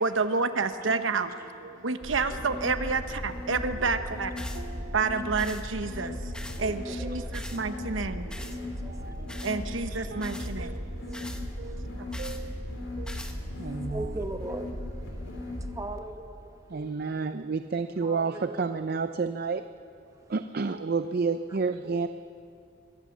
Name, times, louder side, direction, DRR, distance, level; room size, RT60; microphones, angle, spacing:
voice 1, 0.0-1.3 1.8-3.0 3.5-4.3 4.9-6.1 6.6-7.2 7.5-8.1 9.4-10.6, right 4 dB, 80° right, 1.0 m, -28 dB
voice 2, 0.8-1.9 2.3-2.4 3.8-4.1 4.6-5.2 6.4-6.8 7.5-8.2 8.9-9.6 9.9-14.2 16.7-19.6 20.3-22.1, right 4 dB, 50° right, 0.5 m, -33 dB
sound 1, 2.0-15.7, left 1 dB, 80° left, 3.9 m, -37 dB
voice 3, 2.3-2.7 4.7-4.9 6.0-6.2 6.6-7.6 8.3-9.5 11.0-11.8 12.9-16.7 18.0-18.6 20.1-20.3, right 2 dB, 15° right, 0.9 m, -42 dB
sound 2, 4.4-4.6 5.4-5.6 6.3-6.6 7.3-7.6 8.3-8.6 9.3-9.6 10.2-10.5 11.1-11.4 12.1-12.4 13.1-13.4, left 1 dB, 5° left, 1.1 m, -43 dB
22.0 x 16.5 x 7.3 m
head